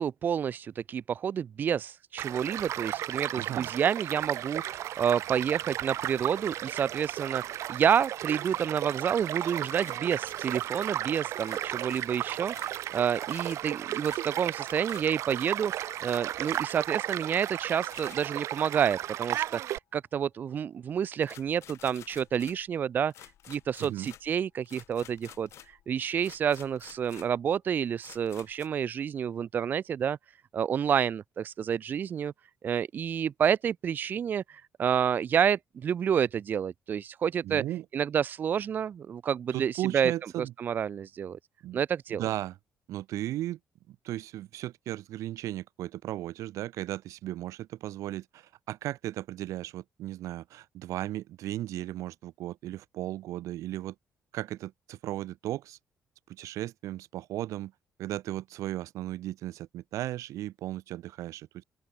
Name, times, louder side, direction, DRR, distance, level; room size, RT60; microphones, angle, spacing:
voice 1, 0.0-23.1 23.5-30.2 30.5-32.3 32.6-37.6 37.9-40.1 40.6-41.4 41.7-42.2, right 8 dB, 35° right, 0.6 m, -29 dB
Child speech kid speaking / Stream / Car passing by, 2.2-19.8, right 13 dB, 65° right, 1.6 m, -34 dB
voice 2, 3.4-3.7 23.8-24.1 37.4-37.8 39.5-40.5 41.6-41.8 42.1-42.6 42.9-43.6 43.9-54.0 54.3-55.8 56.3-57.7 58.0-61.6, right 14 dB, 80° right, 3.8 m, -36 dB
sound 1, 9.7-10.5 11.4-12.8 13.2-13.7 14.0-14.3 14.7-15.1 16.0-16.8 17.8-18.3 19.2-19.7 21.2-22.7 23.1-25.9 26.2-27.4 28.0-28.7, left 12 dB, 60° left, 3.7 m, -52 dB
open air
cardioid pair, 175°, 5 cm